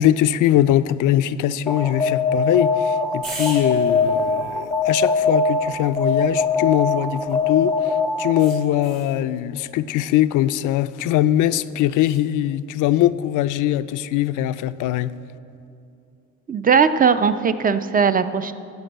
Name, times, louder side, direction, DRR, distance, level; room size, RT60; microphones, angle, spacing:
voice 1, 0.0-15.1, left 12 dB, 80° left, 0.5 m, -21 dB
Alarm, 1.7-8.7, left 4 dB, 10° left, 0.6 m, -22 dB
sound 1, 3.2-7.6 8.4-9.2 11.9-12.3, right 2 dB, 65° right, 3.2 m, -40 dB
voice 2, 16.5-18.5, right 6 dB, 30° right, 0.5 m, -18 dB
14.0 x 5.4 x 7.9 m
cardioid pair, 90°, 30 cm